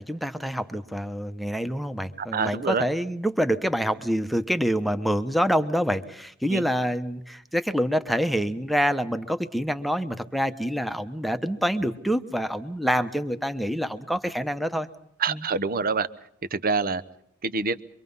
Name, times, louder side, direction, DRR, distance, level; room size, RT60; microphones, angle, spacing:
voice 1, 0.0-14.9 15.3-15.5, equal, ahead, 9 dB, 1.1 m, -26 dB
voice 2, 2.2-2.8 6.5-6.6 15.2-16.1 16.5-17.0 17.4-17.8, right 4 dB, 45° right, 14 dB, 0.9 m, -26 dB
25.5 x 24.0 x 5.5 m, 0.74 s
head